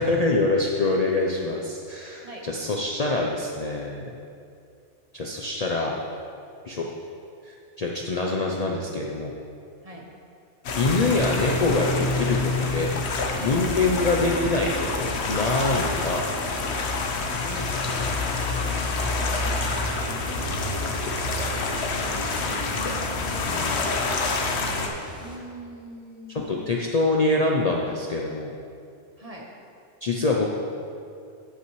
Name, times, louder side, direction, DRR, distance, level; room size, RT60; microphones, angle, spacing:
voice 1, 0.0-4.1 5.1-6.0 6.6-6.9 7.4-9.3 10.7-12.9 13.4-16.2 23.5-23.8 26.3-28.5 30.0-30.5, left 3 dB, 45° left, -1 dB, 0.5 m, -25 dB
sound 1, 10.6-24.9, left 3 dB, 65° left, 1.0 m, -27 dB
sound 2, 12.5-25.4, left 1 dB, 5° right, 0.8 m, -43 dB
voice 2, 19.2-21.2 25.2-26.7 29.2-29.5, equal, 35° right, -1 dB, 0.9 m, -44 dB
14.0 x 5.8 x 3.1 m, 2.4 s
omnidirectional pair, 1.3 m